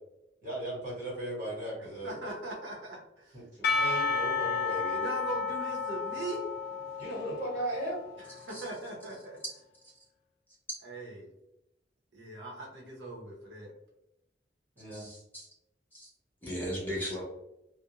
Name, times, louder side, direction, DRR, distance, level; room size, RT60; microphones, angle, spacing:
voice 1, 0.4-2.1 3.3-5.0 7.0-8.0 14.8-15.1, right 1 dB, 45° right, -5 dB, 1.3 m, -37 dB
voice 2, 1.8-3.4 5.0-6.5 8.2-9.4 10.8-11.3 12.1-13.7, right 2 dB, 75° right, -3 dB, 0.7 m, -40 dB
Percussion / Church bell, 3.6-8.4, left 4 dB, 55° left, 0.4 m, -32 dB
voice 3, 14.9-15.5 15.9-16.1 16.4-17.2, equal, 10° left, -6 dB, 0.6 m, -37 dB
2.4 x 2.0 x 2.8 m, 0.86 s
head